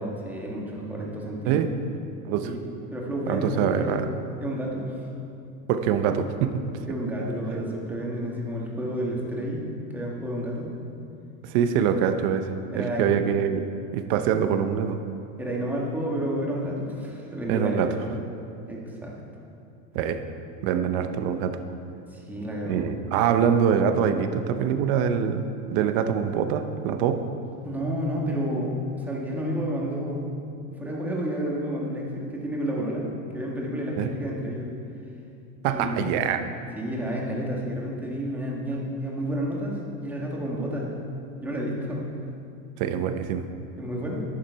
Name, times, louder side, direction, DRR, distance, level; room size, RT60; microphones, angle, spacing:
voice 1, 0.0-1.6 2.4-4.1 4.4-5.0 6.9-9.7 9.9-10.7 12.7-13.1 13.9-14.1 15.4-18.2 18.7-19.1 22.1-23.0 27.6-30.3 30.8-33.1 33.3-34.7 35.7-36.4 36.8-40.9 41.4-42.1 43.8-44.2, equal, 5° right, -3 dB, 1.4 m, -30 dB
voice 2, 3.3-4.1 5.7-6.6 11.4-13.7 13.9-15.0 17.5-17.9 19.9-20.2 20.6-21.6 22.7-25.4 25.7-27.3 34.0-34.1 35.6-36.4 42.8-43.5, right 8 dB, 40° right, 9 dB, 0.7 m, -24 dB
11.0 x 10.5 x 4.6 m, 2.6 s
supercardioid pair, 160°, 41 cm